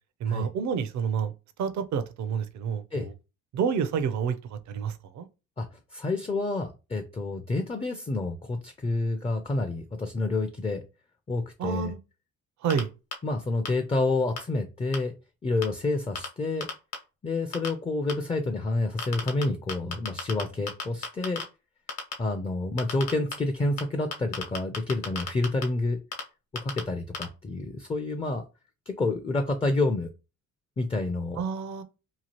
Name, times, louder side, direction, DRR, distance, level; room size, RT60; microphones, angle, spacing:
voice 1, 0.2-1.3 1.6-3.1 3.5-5.3 11.6-12.0 12.6-12.9 31.4-31.8, right 7 dB, 70° right, 0.5 m, -29 dB
voice 2, 5.6-10.8 11.3-11.9 13.2-15.1 15.4-16.7 17.2-21.4 22.2-26.0 26.6-28.4 28.9-30.1 30.8-31.4, left 2 dB, 20° left, 0.4 m, -28 dB
sound 1, 12.7-12.8 13.1-13.2 13.7-13.8 14.4-14.5 14.9-15.0 15.6-15.7 16.2-16.3 16.6-16.9 17.5-17.7 18.1-18.2 19.0-19.4 19.7-20.4 20.7-21.4 21.9-22.1 22.8-23.3 23.8-23.9 24.1-25.6 26.1-26.2 26.6-26.8 27.1-27.2, left 6 dB, 55° left, 1.0 m, -31 dB
2.9 x 2.3 x 2.9 m
cardioid pair, 90°, 30 cm